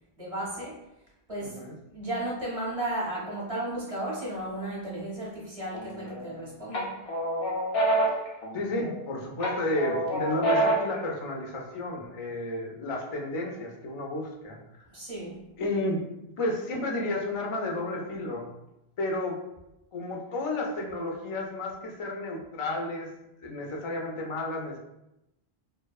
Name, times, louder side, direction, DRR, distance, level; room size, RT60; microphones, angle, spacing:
voice 1, 0.2-0.8 1.3-1.6 1.9-7.0 14.9-15.5, right 1 dB, 40° right, -5 dB, 0.7 m, -34 dB
voice 2, 1.4-1.7 8.5-14.6 15.6-16.1 16.4-18.5 19.0-19.4 19.9-23.1 23.4-24.8, left 2 dB, 55° left, 0 dB, 0.3 m, -32 dB
sound 1, 5.7-6.3 6.7-9.0 9.4-11.0, right 1 dB, 90° left, 0.9 m, -27 dB
2.6 x 2.2 x 2.2 m, 0.87 s
omnidirectional pair, 1.0 m